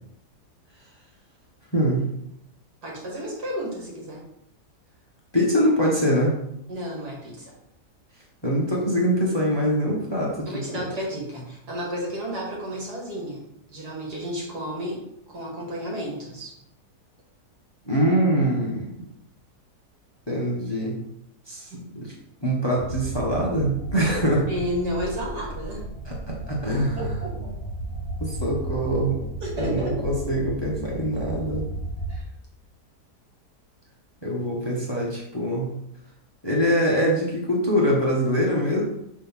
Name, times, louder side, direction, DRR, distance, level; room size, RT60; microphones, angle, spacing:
voice 1, 1.7-2.0 5.3-6.4 8.4-10.8 17.9-18.9 20.3-20.9 21.5-22.1 22.4-24.5 26.0-27.2 28.2-29.2 29.6-31.7 34.2-35.7 36.4-38.8, equal, 15° left, -3 dB, 1.2 m, -24 dB
voice 2, 2.8-4.2 6.7-7.5 10.5-16.5 21.7-21.9 24.5-25.9 27.0-27.3 27.6-27.7 29.4-30.0 32.1-32.2, equal, 70° right, -3 dB, 2.7 m, -32 dB
sound 1, 22.8-32.2, right 2 dB, 45° left, 1.1 m, -34 dB
5.9 x 3.7 x 5.6 m, 0.78 s
omnidirectional pair, 1.7 m